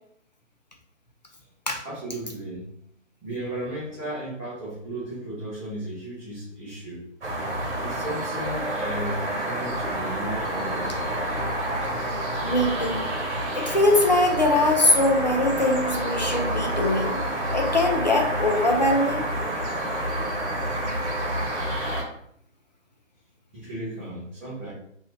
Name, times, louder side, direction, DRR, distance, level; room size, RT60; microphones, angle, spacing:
voice 1, 1.8-2.7 3.2-7.0 7.8-11.0 11.3-11.4 11.9-12.0 23.5-24.7, right 1 dB, 10° right, -10 dB, 0.7 m, -35 dB
sound 1, 7.2-22.0, right 1 dB, 60° right, 1.1 m, -28 dB
voice 2, 12.1-13.0 13.5-17.2 17.5-19.3, left 2 dB, 35° left, 2 dB, 0.4 m, -22 dB
2.8 x 2.7 x 3.1 m, 0.70 s
figure-of-eight pair, 140°, 39 cm